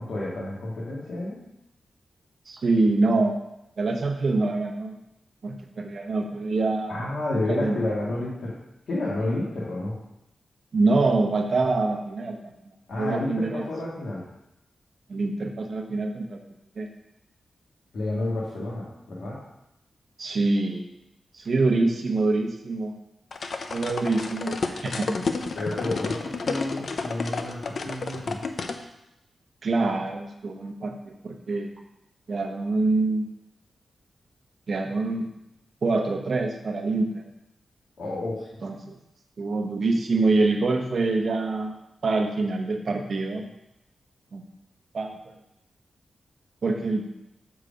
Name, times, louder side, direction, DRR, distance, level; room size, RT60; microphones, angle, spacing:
voice 1, 0.0-1.4 6.9-8.6 8.9-9.9 11.6-11.7 12.9-14.2 17.9-19.4 25.5-28.4 38.0-38.5, left 2 dB, 75° left, -7 dB, 1.8 m, -30 dB
voice 2, 2.5-3.4 3.8-4.9 5.4-6.9 7.5-7.8 10.7-12.4 13.0-13.6 15.1-16.4 16.8-16.9 20.2-20.9 21.3-22.9 23.7-25.2 29.6-31.7 32.3-33.3 34.7-35.3 35.8-37.2 38.6-39.0 39.4-41.7 42.0-43.5 44.3-44.4 44.9-45.2 46.6-47.0, right 3 dB, 55° right, 3 dB, 0.9 m, -25 dB
sound 1, 23.3-28.8, left 4 dB, 55° left, 0.5 m, -31 dB
6.9 x 4.8 x 5.1 m, 0.86 s
wide cardioid pair, 145°, 0 cm